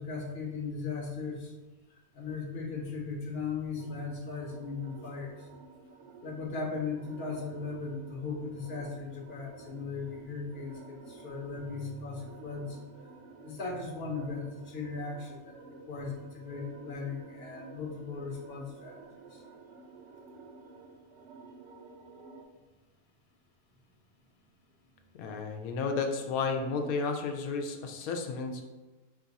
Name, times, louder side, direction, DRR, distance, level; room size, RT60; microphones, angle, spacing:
voice 1, 0.0-1.5 2.1-5.4 6.2-12.8 13.4-15.5 15.9-19.0, left 4 dB, 50° left, -1 dB, 1.0 m, -37 dB
sound 1, 3.8-22.4, right 3 dB, 65° right, 0.8 m, -52 dB
voice 2, 25.2-28.6, left 4 dB, 80° left, 4 dB, 1.1 m, -32 dB
5.1 x 2.4 x 4.0 m, 1.2 s
omnidirectional pair, 1.5 m